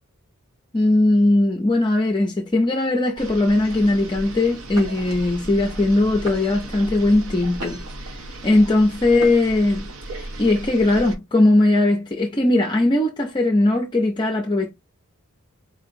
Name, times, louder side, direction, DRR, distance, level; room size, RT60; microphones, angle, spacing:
voice 1, 0.7-7.8 8.4-9.8 10.1-14.7, left 2 dB, 20° left, 0.4 m, -19 dB
sound 1, 3.2-11.2, right 1 dB, 70° right, 0.7 m, -36 dB
sound 2, 4.7-5.1 5.8-5.9 6.3-6.7 7.3-8.1 9.1-9.7, right 1 dB, 85° right, 2.2 m, -36 dB
4.4 x 2.8 x 2.5 m
head